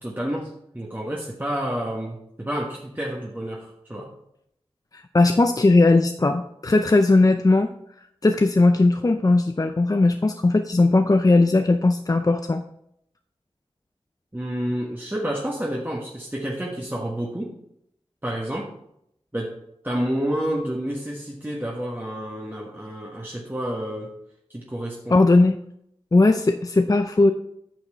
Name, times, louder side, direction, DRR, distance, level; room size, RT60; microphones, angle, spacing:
voice 1, 0.0-4.1 14.3-17.5 18.2-18.7 19.3-24.1 24.5-25.2, equal, 20° right, -2 dB, 1.4 m, -29 dB
voice 2, 4.9-7.7 8.2-12.6 25.1-25.6 26.1-27.3, left 2 dB, 35° left, 7 dB, 0.5 m, -18 dB
9.5 x 5.8 x 4.4 m, 0.74 s
wide cardioid pair, 50°, 11 cm